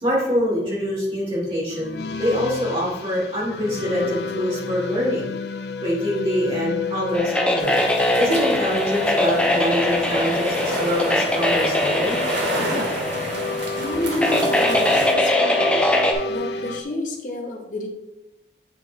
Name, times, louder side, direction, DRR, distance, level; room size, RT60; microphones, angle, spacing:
voice 1, 0.0-5.3 5.8-7.7 8.2-12.2, equal, 30° right, -7 dB, 2.6 m, -24 dB
sound 1, 1.7-16.8, left 4 dB, 70° left, 0.5 m, -31 dB
sound 2, 7.1-16.1, left 1 dB, 5° left, 0.6 m, -22 dB
sound 3, 7.6-15.1, right 1 dB, 85° right, 1.3 m, -30 dB
voice 2, 13.8-15.9 16.3-17.9, left 1 dB, 45° left, 2 dB, 1.1 m, -29 dB
8.0 x 4.1 x 3.6 m, 0.91 s
head